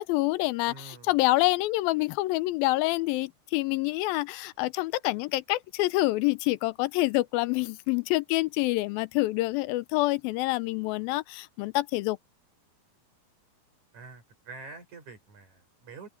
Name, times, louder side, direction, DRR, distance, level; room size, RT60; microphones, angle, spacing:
voice 1, 0.0-12.2, left 19 dB, 85° left, 2.5 m, -27 dB
voice 2, 0.7-1.2 13.9-16.1, right 4 dB, 55° right, 5.5 m, -46 dB
open air
omnidirectional pair, 4.2 m